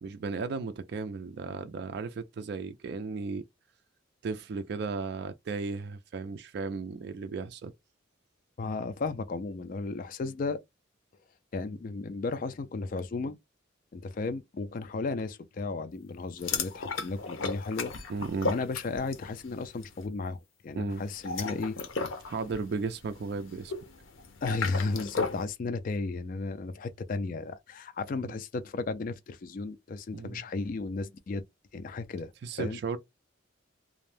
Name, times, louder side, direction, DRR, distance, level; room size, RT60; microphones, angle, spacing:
voice 1, 0.0-3.4 4.2-7.7 18.1-18.5 20.7-21.0 22.2-23.7 28.2-28.3 30.1-30.4 32.4-33.0, right 4 dB, 55° right, 0.3 m, -35 dB
voice 2, 8.6-10.6 11.5-13.4 13.9-17.9 18.4-21.8 24.4-31.4 31.7-32.8, left 3 dB, 45° left, 0.3 m, -34 dB
sound 1, 16.4-19.3 19.6-19.9 21.1-25.4, left 4 dB, 80° left, 0.7 m, -35 dB
2.5 x 2.0 x 3.2 m
head